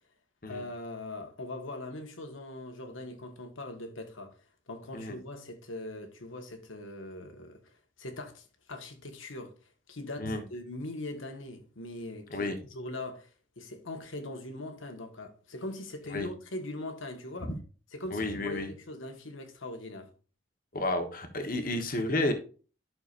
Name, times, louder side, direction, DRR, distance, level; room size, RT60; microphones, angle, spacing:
voice 1, 0.4-4.4 4.7-9.5 9.9-17.5 17.9-20.1, left 1 dB, 85° left, 1.5 m, -41 dB
voice 2, 18.1-18.7 20.7-22.3, left 2 dB, 45° left, 1.2 m, -31 dB
11.5 x 6.0 x 2.5 m
head